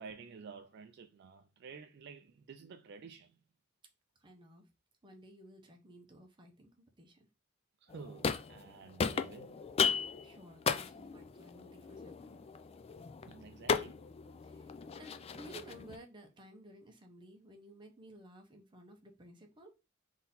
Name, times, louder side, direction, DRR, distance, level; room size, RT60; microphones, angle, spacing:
voice 1, 0.0-3.4 7.8-9.6 13.2-14.0, right 5 dB, 55° right, 0.4 m, -51 dB
voice 2, 4.2-4.7 5.0-7.3 10.0-12.4 14.4-19.7, right 1 dB, 25° right, 0.8 m, -55 dB
sound 1, 7.9-8.7 9.0-16.0, left 6 dB, 30° left, 0.3 m, -36 dB
3.8 x 2.8 x 4.0 m
head